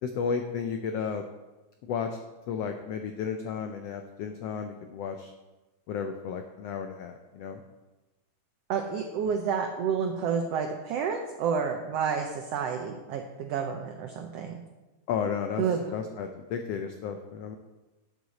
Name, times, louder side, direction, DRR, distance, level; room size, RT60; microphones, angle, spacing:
voice 1, 0.0-1.2 1.8-2.2 2.5-5.3 5.9-7.6 15.1-15.6 15.9-17.6, left 6 dB, 85° left, 5 dB, 1.4 m, -33 dB
voice 2, 8.7-14.6 15.6-15.8, right 6 dB, 75° right, 4 dB, 1.5 m, -30 dB
12.5 x 8.1 x 4.1 m, 1.1 s
omnidirectional pair, 3.6 m